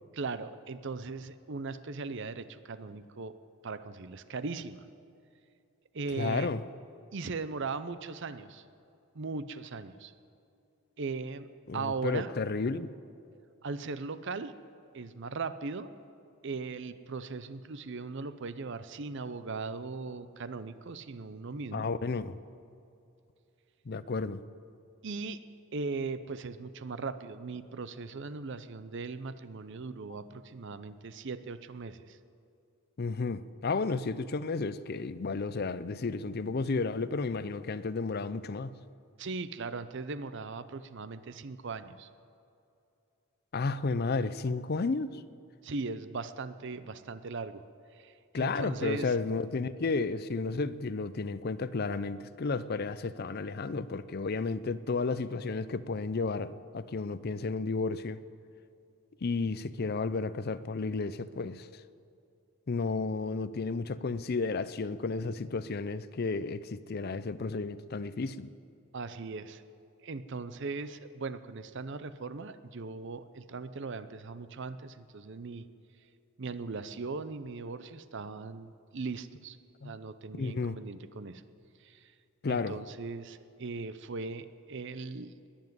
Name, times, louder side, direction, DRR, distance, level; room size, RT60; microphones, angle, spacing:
voice 1, 0.1-3.4 3.6-4.8 5.9-6.5 7.1-8.6 9.1-10.1 11.0-12.3 13.6-14.5 14.9-15.9 16.4-21.9 25.0-25.4 25.7-32.2 39.2-42.1 45.6-47.6 47.9-49.2 68.9-69.6 70.0-75.7 76.4-79.6 79.8-81.4 81.8-82.1 82.5-85.3, right 4 dB, 55° right, 0.6 m, -39 dB
voice 2, 6.2-6.6 11.7-12.9 21.7-22.4 23.9-24.4 33.0-38.7 43.5-45.2 48.3-58.2 59.2-61.7 62.7-68.5 79.8-79.9 80.4-80.8 82.4-82.8, left 4 dB, 45° left, 0.5 m, -32 dB
20.5 x 7.3 x 9.3 m
head